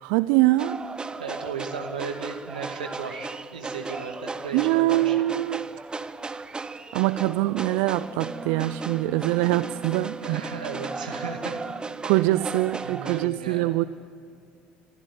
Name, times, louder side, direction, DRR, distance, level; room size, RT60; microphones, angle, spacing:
voice 1, 0.0-0.8 4.5-5.6 6.9-10.4 12.0-13.8, right 17 dB, 65° right, 15 dB, 0.6 m, -23 dB
sound 1, 0.6-13.3, right 3 dB, 20° right, 0.9 m, -36 dB
voice 2, 1.2-5.2 10.2-12.2 12.8-13.7, right 5 dB, 85° right, 4 dB, 2.3 m, -36 dB
Bowed string instrument, 8.0-12.1, right 2 dB, 15° left, 3.4 m, -44 dB
26.0 x 15.5 x 9.5 m, 2.4 s
hypercardioid pair, 65°, 4 cm